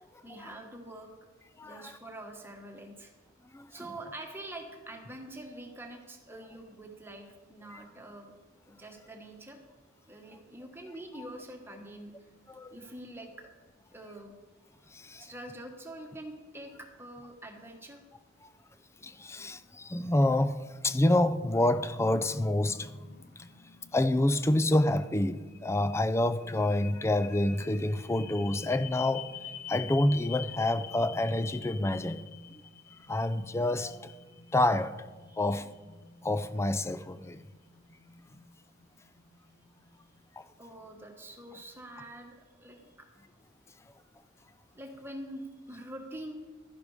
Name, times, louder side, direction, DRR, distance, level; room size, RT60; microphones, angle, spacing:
voice 1, 0.2-1.1 1.6-3.1 3.7-8.3 8.7-9.6 10.0-12.1 12.7-13.5 13.9-14.3 15.2-18.0 35.3-35.6 40.6-43.1 44.7-46.3, right 1 dB, 10° right, 1.5 m, -45 dB
voice 2, 1.6-1.9 3.5-3.7 6.3-6.4 7.7-7.8 12.5-12.7 14.9-15.3 19.0-20.6 20.8-23.1 23.9-29.2 29.7-32.2 33.1-34.1 34.5-34.9 35.4-35.7 36.2-37.4 40.4-40.5, left 1 dB, 15° left, 0.4 m, -28 dB
sound 1, 22.8-40.2, left 9 dB, 50° left, 0.8 m, -48 dB
12.0 x 10.0 x 4.9 m
head